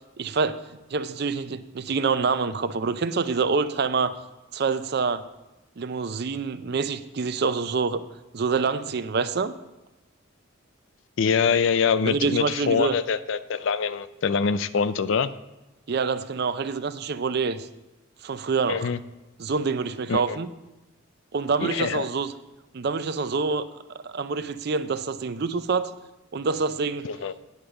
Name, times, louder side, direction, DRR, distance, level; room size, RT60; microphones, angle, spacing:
voice 1, 0.2-0.6 0.9-4.1 4.5-5.3 5.8-8.0 8.3-9.5 12.1-12.9 15.9-17.7 18.2-18.9 19.4-20.5 21.3-22.3 22.7-23.6 24.0-25.9 26.3-27.1, right 4 dB, 50° right, 12 dB, 0.4 m, -26 dB
voice 2, 11.2-15.3 18.7-19.0 20.1-20.4 21.6-22.1 27.0-27.3, left 6 dB, 60° left, 15 dB, 0.4 m, -24 dB
9.5 x 5.0 x 6.9 m, 1.0 s
head